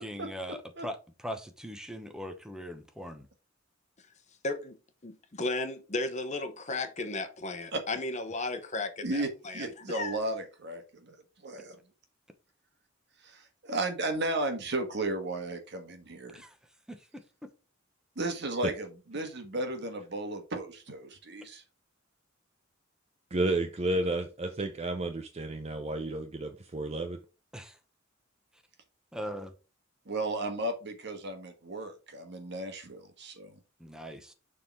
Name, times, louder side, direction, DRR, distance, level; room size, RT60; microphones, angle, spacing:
voice 1, 0.0-3.3 16.3-16.5 16.9-17.2 27.5-27.8 29.1-29.5 33.8-34.3, equal, 5° right, 0.9 m, -40 dB
voice 2, 4.4-4.8 5.0-10.2, left 2 dB, 35° left, 1.0 m, -35 dB
voice 3, 9.5-11.2 11.4-11.8 13.2-16.4 18.1-21.6 30.1-33.5, right 2 dB, 60° right, 1.5 m, -34 dB
voice 4, 23.3-27.2, right 2 dB, 30° right, 0.6 m, -31 dB
6.7 x 3.7 x 4.7 m
head